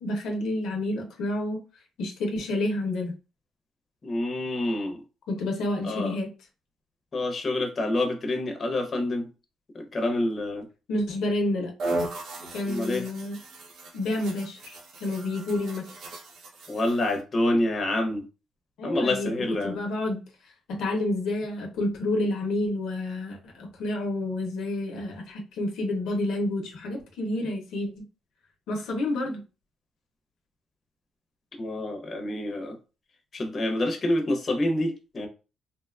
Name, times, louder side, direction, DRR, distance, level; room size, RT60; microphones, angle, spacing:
voice 1, 0.0-1.6 2.0-3.1 5.3-6.3 10.9-11.7 12.5-13.4 13.9-15.9 18.8-19.3 19.6-20.2 20.7-28.0 28.7-29.4, left 1 dB, 80° left, 2 dB, 0.6 m, -29 dB
voice 2, 4.0-5.0 5.8-6.2 7.1-9.3 9.7-10.7 12.7-13.0 16.7-18.2 18.8-19.8 31.6-32.8 33.3-35.3, left 1 dB, 40° left, 4 dB, 0.7 m, -27 dB
sound 1, 11.8-17.2, right 2 dB, 70° right, 0.6 m, -36 dB
2.8 x 2.2 x 2.3 m, 0.32 s
cardioid pair, 90°, 0 cm